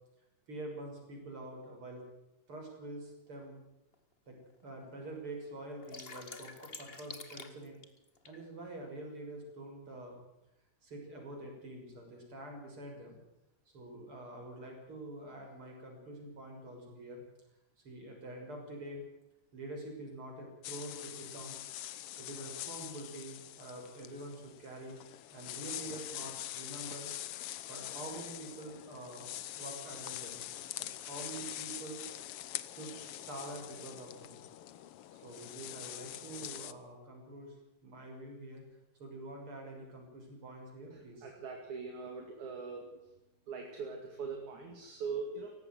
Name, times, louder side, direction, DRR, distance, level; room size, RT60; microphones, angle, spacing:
voice 1, 0.5-2.0 2.5-3.6 4.3-4.4 4.6-7.8 8.3-10.2 10.8-13.2 13.7-17.2 17.8-19.0 19.5-21.6 22.2-25.0 25.3-27.1 27.7-30.4 30.8-32.0 32.7-34.4 35.1-37.6 37.8-38.6 39.0-41.3, right 1 dB, 40° right, 1 dB, 7.2 m, -46 dB
sound 1, 2.6-2.7 3.4-3.5 3.9-4.0 4.3-4.9 5.2-8.4, left 4 dB, 25° left, 1.2 m, -48 dB
sound 2, 20.6-36.7, left 13 dB, 85° left, 1.2 m, -44 dB
voice 2, 41.2-43.0 43.5-45.5, right 5 dB, 65° right, 2 dB, 3.8 m, -41 dB
18.5 x 16.5 x 9.5 m, 0.89 s
omnidirectional pair, 3.8 m